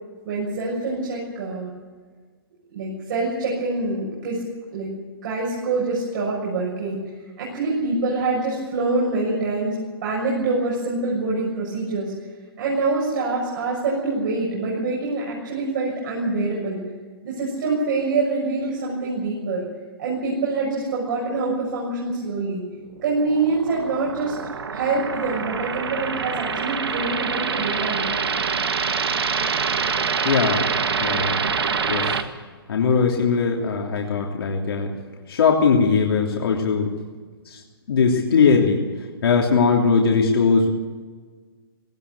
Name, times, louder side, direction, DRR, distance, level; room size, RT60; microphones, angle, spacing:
voice 1, 0.2-1.7 2.7-4.4 4.7-4.9 5.2-7.0 7.4-9.7 10.0-12.1 12.6-16.8 17.2-19.7 20.0-22.6 23.0-24.3 24.7-28.0, right 3 dB, 55° right, -5 dB, 6.9 m, -25 dB
sound 1, 23.0-32.2, right 6 dB, 90° right, 1.8 m, -25 dB
voice 2, 30.2-30.6 31.0-31.4 31.9-32.2 32.7-34.9 35.3-36.9 37.5-37.6 37.9-38.8 39.2-40.8, left 5 dB, 75° left, -1 dB, 3.2 m, -20 dB
18.0 x 17.5 x 8.4 m, 1.5 s
hypercardioid pair, 155°, 13 cm